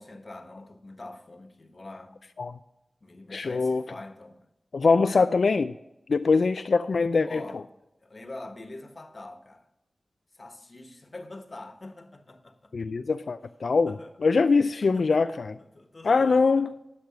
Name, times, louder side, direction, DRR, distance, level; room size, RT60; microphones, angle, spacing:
voice 1, 0.0-2.2 3.0-4.4 5.0-5.3 7.2-7.6 8.0-9.7 10.3-12.7 13.9-14.1 14.8-15.4 15.7-16.6, left 2 dB, 50° left, 1.3 m, -44 dB
voice 2, 3.3-3.8 4.7-5.7 6.1-7.4 12.7-15.5 16.0-16.7, left 4 dB, 80° left, 0.3 m, -23 dB
10.5 x 6.5 x 5.9 m
cardioid pair, 40°, 0 cm